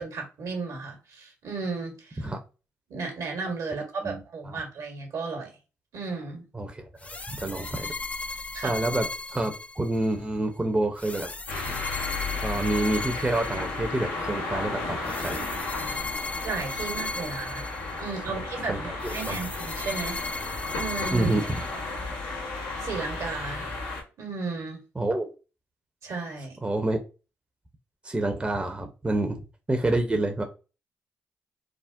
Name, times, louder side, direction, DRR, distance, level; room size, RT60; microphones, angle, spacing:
voice 1, 0.0-2.2 2.9-5.5 5.9-6.4 8.5-8.8 16.4-17.7 18.0-20.2 20.8-21.3 22.8-23.7 24.2-24.8 26.0-26.6, right 4 dB, 70° right, 1.2 m, -34 dB
voice 2, 4.0-4.6 6.5-6.8 7.3-7.9 8.6-11.3 12.3-15.5 18.0-18.1 18.7-18.8 19.0-19.4 21.1-21.7 25.0-25.3 26.6-27.0 28.0-29.4 29.7-30.4, right 2 dB, 20° right, 0.6 m, -28 dB
sound 1, 7.0-10.2 11.0-14.1 15.0-18.2 19.0-22.1, left 3 dB, 25° left, 0.4 m, -37 dB
sound 2, 11.5-24.0, left 3 dB, 85° left, 0.9 m, -33 dB
3.5 x 2.0 x 2.5 m
supercardioid pair, 50°, 6 cm